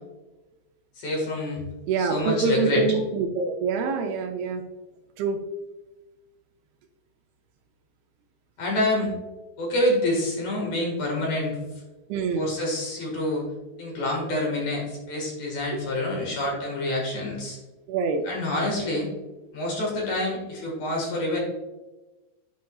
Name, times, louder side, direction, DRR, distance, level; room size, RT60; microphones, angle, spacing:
voice 1, 1.0-1.7 2.0-2.8 8.6-9.1 9.6-11.6 12.3-13.5 13.8-17.6 18.2-19.1 19.5-21.4, left 1 dB, 50° left, -2 dB, 2.5 m, -27 dB
voice 2, 1.9-4.6 5.2-5.4 12.1-12.5 15.7-15.8 17.9-18.2, right 4 dB, 80° right, 4 dB, 2.4 m, -25 dB
12.0 x 4.1 x 2.3 m, 1.1 s
omnidirectional pair, 4.8 m